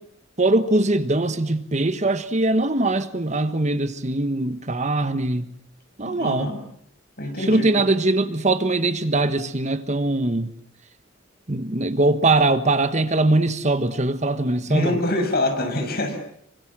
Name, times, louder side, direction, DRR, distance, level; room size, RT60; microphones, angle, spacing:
voice 1, 0.4-5.5 6.0-6.5 7.4-10.5 11.5-15.0, right 2 dB, 35° right, 1.3 m, -21 dB
voice 2, 6.0-6.6 7.2-7.8 14.6-16.2, left 1 dB, 50° left, 6.4 m, -25 dB
26.5 x 25.0 x 7.5 m
head